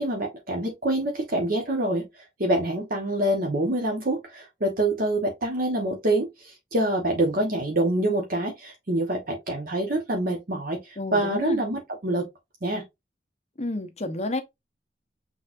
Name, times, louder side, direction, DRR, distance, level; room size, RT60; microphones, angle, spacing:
voice 1, 0.0-2.0 2.4-12.3 12.6-12.8, right 1 dB, 55° right, 1.1 m, -26 dB
voice 2, 11.0-11.6 13.6-14.4, left 1 dB, 40° left, 0.8 m, -30 dB
6.1 x 3.3 x 2.5 m
head